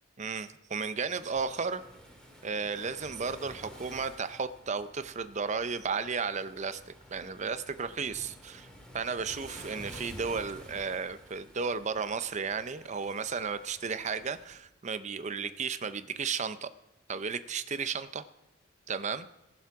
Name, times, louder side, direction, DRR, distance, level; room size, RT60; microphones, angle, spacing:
voice 1, 0.2-1.8 2.4-8.7 8.9-16.7 17.1-18.2 18.9-19.3, right 5 dB, 35° right, 12 dB, 0.6 m, -34 dB
Waves surf, 1.0-14.6, equal, 5° left, 2.0 m, -51 dB
19.0 x 7.2 x 4.7 m, 0.97 s
head